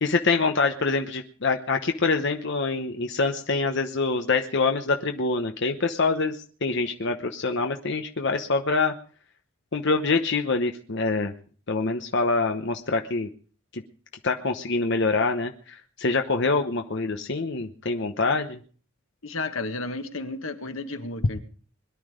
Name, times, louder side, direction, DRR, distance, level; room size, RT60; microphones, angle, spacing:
voice 1, 0.0-8.9 9.7-11.3 11.7-13.3 13.7-13.8 14.2-18.6, left 3 dB, 60° left, 5 dB, 1.0 m, -25 dB
voice 2, 19.2-21.4, left 3 dB, 90° left, 7 dB, 1.8 m, -32 dB
22.0 x 11.0 x 5.1 m, 0.43 s
head